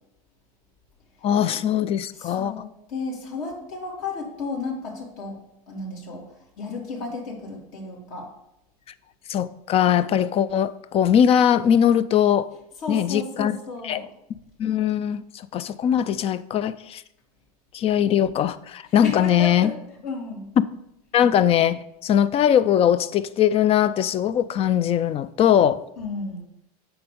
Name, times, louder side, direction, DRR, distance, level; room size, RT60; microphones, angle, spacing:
voice 1, 1.2-2.5 9.3-12.5 12.9-13.5 13.8-14.0 14.6-17.0 17.7-19.7 20.6-20.7 21.1-25.8, left 9 dB, 30° left, 0.4 m, -20 dB
voice 2, 2.1-5.4 5.7-8.3 12.8-14.1 18.9-19.7 20.0-20.5 26.0-26.4, left 3 dB, 65° left, 2.9 m, -33 dB
8.0 x 6.2 x 5.2 m
hypercardioid pair, 110°, 19 cm